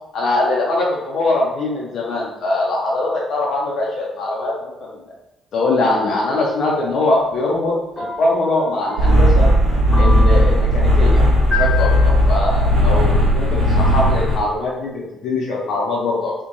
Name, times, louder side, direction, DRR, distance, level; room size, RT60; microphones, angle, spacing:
voice 1, 0.1-5.0 5.5-9.5 10.0-11.2 11.5-16.3, left 2 dB, 55° left, -4 dB, 0.5 m, -22 dB
Mix of different piano sounds, 6.7-6.8 8.0-8.5 8.9-9.3 9.9-10.5 11.5-12.1, left 5 dB, 20° left, 1.0 m, -27 dB
sound 1, 9.0-14.4, equal, 70° right, 0.7 m, -15 dB
2.5 x 2.1 x 2.7 m, 0.94 s
figure-of-eight pair, 40°, 0 cm